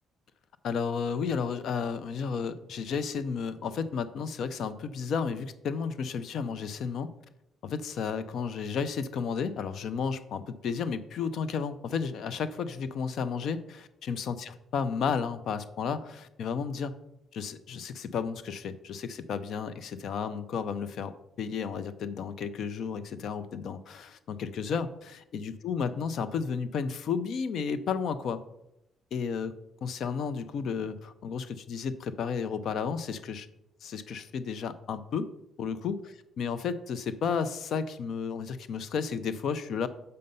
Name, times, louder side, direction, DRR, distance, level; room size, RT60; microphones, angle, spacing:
voice 1, 0.6-7.1 7.6-17.0 17.3-28.4 29.1-29.5 29.8-33.5 33.8-35.3 35.6-36.0 36.4-39.9, left 6 dB, 70° left, 13 dB, 0.6 m, -32 dB
6.7 x 5.4 x 5.3 m, 0.85 s
cardioid pair, 90°, 0 cm